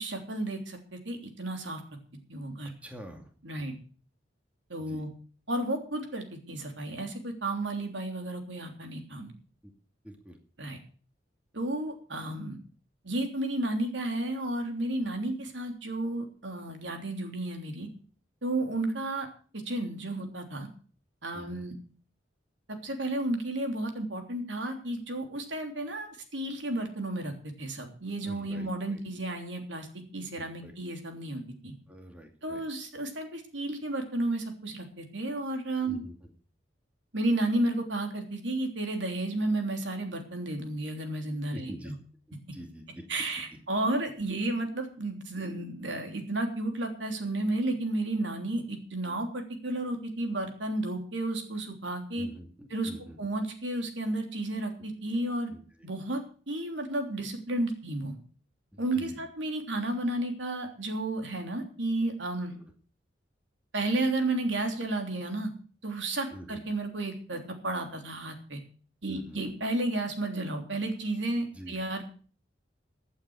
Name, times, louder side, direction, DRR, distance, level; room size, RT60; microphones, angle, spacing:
voice 1, 0.0-1.8 2.3-2.7 3.4-3.7 4.7-5.1 5.5-9.3 10.6-10.8 11.5-12.6 13.0-17.9 18.4-19.3 19.5-20.7 21.2-21.7 22.7-27.3 27.6-29.9 30.1-31.7 32.4-36.0 37.1-41.9 43.1-52.3 52.7-55.5 55.8-56.2 56.5-58.2 58.8-62.6 63.7-65.5 65.8-68.6 69.0-72.1, right 2 dB, 80° right, 4 dB, 3.3 m, -32 dB
voice 2, 2.8-3.3 3.6-3.7 4.8-5.0 9.6-9.7 10.0-10.4 21.3-21.6 28.2-29.0 30.4-30.7 31.9-32.6 35.8-36.1 41.5-41.9 42.3-43.0 43.5-43.6 52.2-53.2 55.5-55.9 58.7-59.2 62.5-62.7 66.3-66.6 69.1-69.5 71.5-71.7, equal, 5° right, 3 dB, 2.4 m, -46 dB
16.0 x 8.8 x 6.3 m, 0.41 s
head